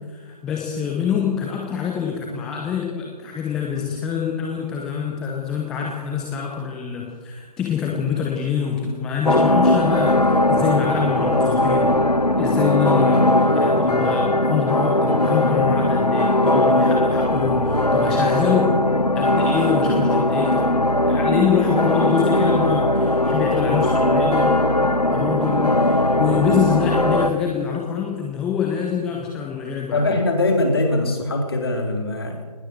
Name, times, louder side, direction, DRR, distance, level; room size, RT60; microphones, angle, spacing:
voice 1, 0.1-12.0 12.4-18.8 19.2-20.7 21.1-24.6 25.1-30.2, left 7 dB, 5° left, -1 dB, 0.6 m, -25 dB
sound 1, 9.3-27.3, left 1 dB, 80° left, 1.7 m, -19 dB
voice 2, 29.9-32.4, left 2 dB, 40° left, 3 dB, 4.2 m, -22 dB
19.5 x 18.0 x 7.6 m, 1.5 s
figure-of-eight pair, 150°, 20 cm